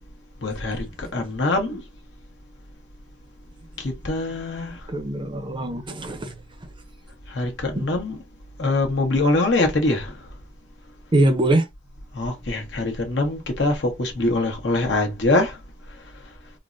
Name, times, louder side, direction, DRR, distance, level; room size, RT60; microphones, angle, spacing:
voice 1, 0.4-1.8 3.8-4.9 7.3-8.2 8.6-10.3 12.1-15.6 15.9-16.3, left 2 dB, 70° left, 1.1 m, -24 dB
voice 2, 4.9-6.3 7.8-7.9 11.1-11.6, right 1 dB, 25° right, 0.6 m, -22 dB
3.8 x 2.1 x 2.5 m
head